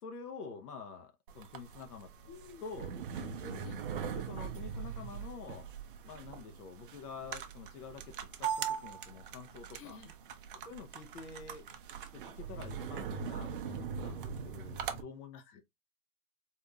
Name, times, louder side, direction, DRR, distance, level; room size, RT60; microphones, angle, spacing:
voice 1, 0.0-2.1 2.6-3.7 4.1-5.7 6.0-10.0 10.5-11.6 12.1-15.6, left 5 dB, 75° left, 0.9 m, -48 dB
sound 1, 1.3-15.0, right 7 dB, 40° right, 0.4 m, -41 dB
voice 2, 2.3-2.6 3.6-3.8 9.7-10.1 14.2-14.5 15.3-15.6, left 6 dB, 35° left, 1.1 m, -52 dB
3.9 x 2.7 x 2.2 m
hypercardioid pair, 130°, 46 cm